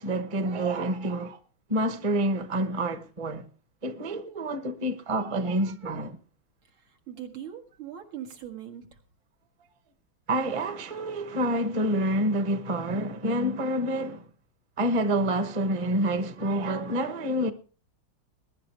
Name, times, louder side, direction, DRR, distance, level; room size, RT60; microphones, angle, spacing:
voice 1, 0.0-1.4 1.7-3.5 3.8-6.2 10.3-14.2 14.8-17.5, right 1 dB, 25° right, 0.7 m, -28 dB
voice 2, 6.9-8.9, right 10 dB, 80° right, 2.7 m, -40 dB
21.5 x 11.0 x 3.3 m
omnidirectional pair, 2.2 m